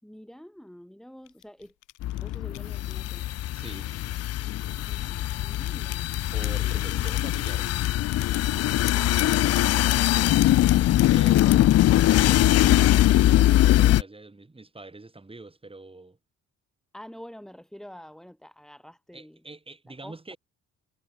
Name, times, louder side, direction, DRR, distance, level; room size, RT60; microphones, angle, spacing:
voice 1, 0.0-1.8 2.2-3.3 4.8-6.1 6.6-7.0 16.9-19.4 19.9-20.3, equal, ahead, 3.8 m, -47 dB
sound 1, 1.3-3.7 4.4-7.5 7.8-8.5 8.9-11.8, left 17 dB, 90° left, 1.2 m, -38 dB
sound 2, 2.0-14.0, left 14 dB, 55° left, 0.4 m, -22 dB
voice 2, 3.5-3.9 6.3-7.8 11.0-13.0 13.6-16.2 19.1-20.4, right 2 dB, 20° right, 7.5 m, -44 dB
cardioid pair, 90°, 30 cm